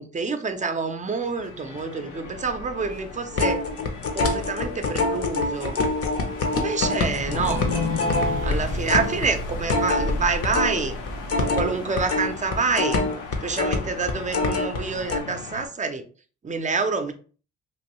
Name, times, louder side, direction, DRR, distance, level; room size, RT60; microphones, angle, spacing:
voice 1, 0.0-3.6 4.1-5.8 6.5-7.6 8.4-11.0 11.4-13.0 13.4-16.0 16.4-17.1, right 4 dB, 25° right, 0.5 m, -27 dB
sound 1, 1.1-15.7, left 4 dB, 90° left, 0.8 m, -39 dB
sound 2, 2.1-5.0 5.4-5.5 6.9-12.0, left 2 dB, 70° left, 1.3 m, -33 dB
sound 3, 3.3-10.8 11.1-14.8 15.1-15.2, left 3 dB, 50° left, 0.7 m, -25 dB
3.0 x 2.6 x 2.9 m
cardioid pair, 90°, 30 cm